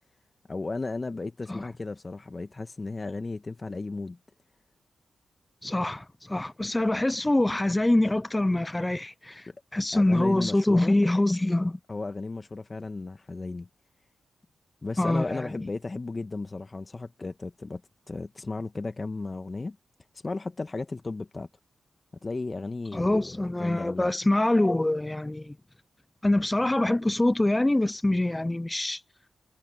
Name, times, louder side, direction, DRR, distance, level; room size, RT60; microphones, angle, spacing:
voice 1, 0.5-4.2 9.5-9.6 9.9-11.0 11.9-13.7 14.8-17.8 18.1-19.8 20.2-21.5 22.2-24.1, left 3 dB, 40° left, 1.7 m, -35 dB
voice 2, 5.6-9.4 9.7-11.8 15.0-15.5 22.9-25.5 26.2-29.0, left 1 dB, 20° left, 0.8 m, -25 dB
supercardioid pair, 45°, 0 cm